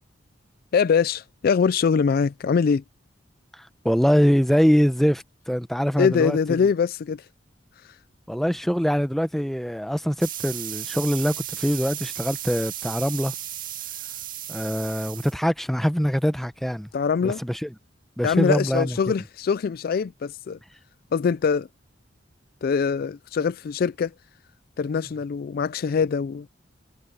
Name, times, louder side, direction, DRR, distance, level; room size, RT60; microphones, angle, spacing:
voice 1, 0.7-2.8 6.0-7.2 16.9-17.4 18.2-20.6 21.1-21.7 22.6-24.1 24.8-26.5, left 6 dB, 55° left, 0.3 m, -23 dB
voice 2, 3.5-6.7 8.3-13.3 14.5-16.9 17.2-17.7 18.2-19.0, equal, ahead, 0.8 m, -23 dB
sound 1, 10.2-15.3, right 11 dB, 50° right, 2.1 m, -35 dB
head